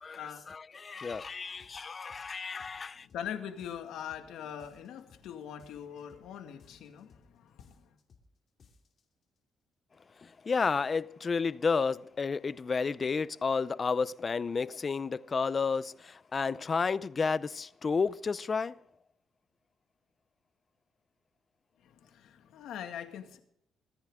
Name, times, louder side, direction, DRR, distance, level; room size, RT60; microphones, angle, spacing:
voice 1, 0.0-3.1 10.2-18.8, left 5 dB, 35° left, 0.6 m, -31 dB
sound 1, 1.1-1.3 1.6-2.3 2.6-3.3 3.6-4.3 4.6-5.3 5.6-6.3 6.6-7.3 7.6-8.3 8.6-9.0, left 5 dB, 55° left, 2.8 m, -61 dB
voice 2, 3.0-7.9 21.8-23.4, left 9 dB, 80° left, 2.0 m, -42 dB
24.0 x 10.5 x 3.7 m
cardioid pair, 90°, 0 cm